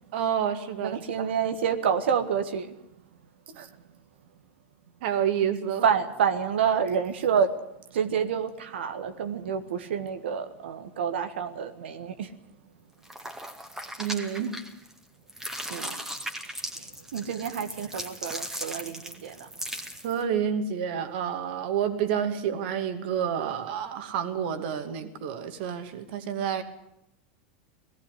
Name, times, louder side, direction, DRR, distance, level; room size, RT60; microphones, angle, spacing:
voice 1, 0.1-1.0 3.5-3.7 5.0-5.9 14.0-14.6 20.0-26.6, right 8 dB, 65° right, 2.4 m, -29 dB
voice 2, 0.8-2.7 5.8-7.6 7.9-12.3 15.7-16.0 16.7-19.5, right 7 dB, 80° right, 1.6 m, -28 dB
sound 1, 13.0-15.0 15.3-20.2, right 1 dB, 5° right, 2.1 m, -38 dB
18.5 x 14.5 x 10.0 m
hypercardioid pair, 110°, 6 cm